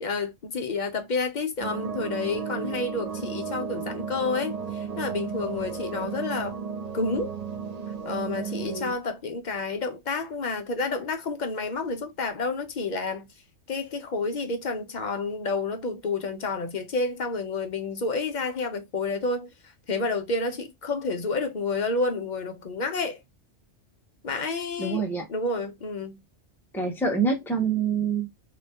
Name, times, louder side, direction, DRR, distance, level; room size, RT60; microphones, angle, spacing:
voice 1, 0.0-6.6 6.9-7.3 8.0-13.3 13.7-19.5 19.9-23.2 24.2-26.2, left 3 dB, 50° left, 0.6 m, -30 dB
sound 1, 1.6-8.9, right 6 dB, 50° right, 0.5 m, -34 dB
voice 2, 24.8-25.3 26.7-28.3, right 5 dB, ahead, 0.6 m, -25 dB
2.9 x 2.7 x 3.3 m
omnidirectional pair, 1.3 m